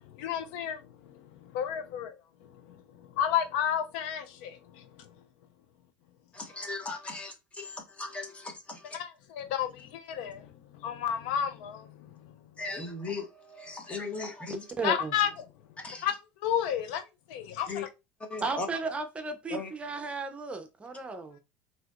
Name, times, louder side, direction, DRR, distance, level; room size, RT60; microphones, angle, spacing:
voice 1, 0.2-0.8 1.5-2.1 2.7-2.8 3.2-4.8 8.9-10.5 10.8-11.9 14.8-15.3 16.0-16.1 16.4-17.0 17.3-17.7, left 9 dB, 75° left, 0.5 m, -31 dB
voice 2, 6.3-9.0 12.6-14.7 15.8-16.2 17.7-17.8 18.2-18.7 19.5-19.7, left 3 dB, 20° left, 1.1 m, -38 dB
voice 3, 14.8-15.1 18.4-21.4, right 3 dB, 20° right, 0.6 m, -34 dB
4.7 x 2.9 x 2.5 m
supercardioid pair, 110°, 6 cm